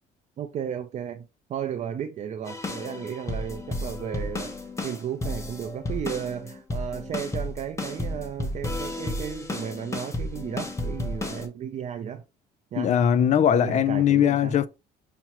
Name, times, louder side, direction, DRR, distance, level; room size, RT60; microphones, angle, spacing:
voice 1, 0.4-4.5 4.8-12.2 12.7-13.0 13.5-14.6, right 8 dB, 45° right, 0.4 m, -34 dB
sound 1, 2.4-11.5, left 1 dB, 15° left, 0.8 m, -33 dB
voice 2, 12.8-14.7, left 9 dB, 45° left, 0.4 m, -20 dB
5.8 x 2.1 x 2.8 m
cardioid pair, 110°, 17 cm